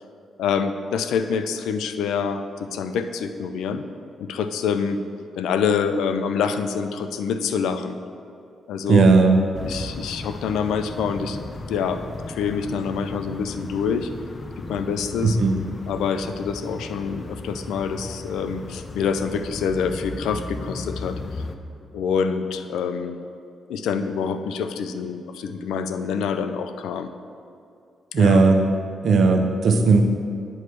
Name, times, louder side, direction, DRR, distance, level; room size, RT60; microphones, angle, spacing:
voice 1, 0.4-3.8 4.2-5.0 5.4-8.0 8.7-9.1 9.6-11.4 11.7-14.1 14.7-15.4 15.9-21.2 21.9-23.2 23.7-27.1 28.2-28.4, left 6 dB, 85° left, 9 dB, 0.4 m, -26 dB
voice 2, 8.9-9.4 15.2-15.5 28.1-28.6 29.0-30.0, right 4 dB, 65° right, 4 dB, 0.8 m, -16 dB
sound 1, 9.5-21.6, left 2 dB, 35° left, 0.6 m, -36 dB
9.2 x 3.1 x 6.7 m, 2.5 s
cardioid pair, 75°, 0 cm